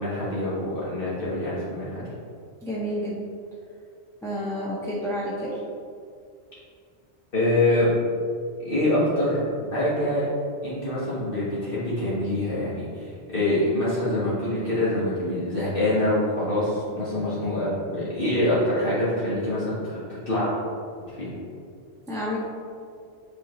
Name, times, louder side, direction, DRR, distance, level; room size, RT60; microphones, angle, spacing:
voice 1, 0.0-2.0 7.3-7.9 8.7-10.3 10.6-20.5 21.1-21.3, left 1 dB, 55° left, -10 dB, 1.7 m, -25 dB
voice 2, 2.6-3.2 4.2-5.6 22.1-22.4, equal, 5° left, -8 dB, 0.8 m, -29 dB
7.7 x 4.2 x 3.1 m, 2.4 s
omnidirectional pair, 1.1 m